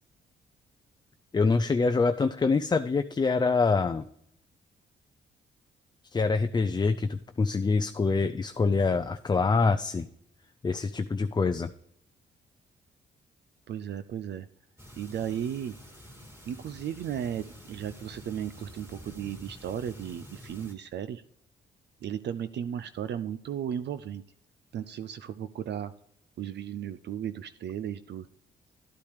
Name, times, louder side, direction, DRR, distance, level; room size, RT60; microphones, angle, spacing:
voice 1, 1.3-4.0 6.1-10.1 10.6-11.7, left 4 dB, 20° left, 9 dB, 0.4 m, -25 dB
voice 2, 13.7-14.5 15.0-15.7 16.5-21.2 22.0-24.2 24.7-25.9 26.4-28.3, right 9 dB, 60° right, 13 dB, 0.5 m, -35 dB
sound 1, 14.8-20.7, equal, 15° right, 2.9 m, -48 dB
12.0 x 8.4 x 3.3 m, 0.73 s
cardioid pair, 65°, 20 cm